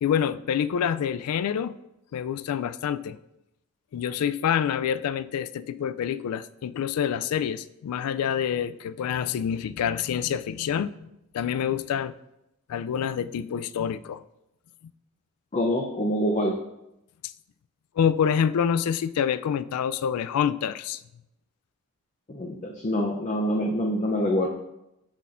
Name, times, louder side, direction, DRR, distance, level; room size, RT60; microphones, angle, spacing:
voice 1, 0.0-1.7 2.1-3.2 3.9-11.1 11.3-12.1 12.7-14.2 18.0-21.0, left 8 dB, 80° left, 15 dB, 0.3 m, -27 dB
voice 2, 15.5-16.6 22.3-24.5, equal, 30° left, 0 dB, 0.6 m, -25 dB
12.0 x 4.1 x 2.5 m, 0.87 s
head